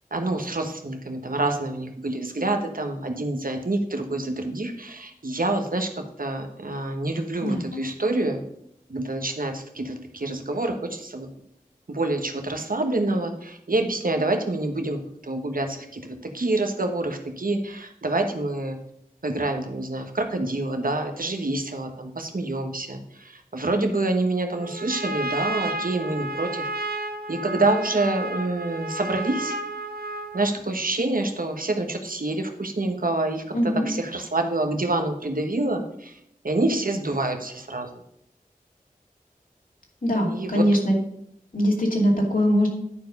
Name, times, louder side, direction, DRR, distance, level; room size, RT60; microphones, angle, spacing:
voice 1, 0.1-8.4 8.9-11.3 11.9-18.8 19.2-26.7 27.3-29.5 30.3-37.9 40.3-40.6, right 2 dB, 70° right, 5 dB, 1.2 m, -27 dB
Trumpet, 24.5-30.5, right 2 dB, 85° right, 0.8 m, -32 dB
voice 2, 33.5-33.9 40.0-41.0 41.5-42.7, equal, 65° left, -1 dB, 2.5 m, -21 dB
10.0 x 4.7 x 5.3 m, 0.76 s
wide cardioid pair, 45°, 15 cm